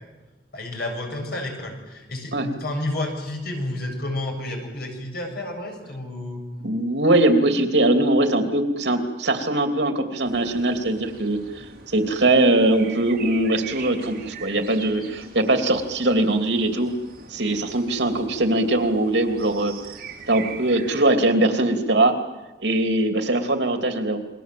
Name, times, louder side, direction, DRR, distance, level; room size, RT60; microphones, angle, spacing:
voice 1, 0.5-6.5, left 1 dB, 60° left, 3 dB, 7.4 m, -30 dB
voice 2, 6.6-11.4 11.9-16.9 17.3-19.7 20.3-22.2 22.6-24.2, right 1 dB, 80° right, 5 dB, 2.9 m, -21 dB
sound 1, 10.2-21.0, right 5 dB, 55° right, 3.7 m, -41 dB
29.0 x 22.0 x 7.7 m, 1.1 s
head